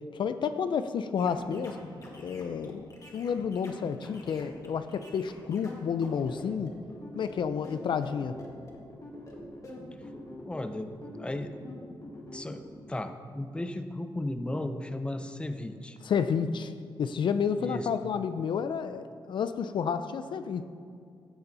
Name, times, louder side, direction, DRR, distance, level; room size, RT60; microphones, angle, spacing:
voice 1, 0.1-1.8 2.2-6.7 7.1-8.4 16.0-16.7 17.0-20.6, left 6 dB, 65° left, 11 dB, 0.4 m, -30 dB
sound 1, 1.2-12.8, left 1 dB, 40° left, 1.8 m, -45 dB
voice 2, 10.4-11.5 11.8-11.9 12.3-12.6 12.9-16.0 17.6-17.9, left 1 dB, 10° left, 8 dB, 0.6 m, -35 dB
15.0 x 6.9 x 4.0 m, 2.3 s
cardioid pair, 105°, 9 cm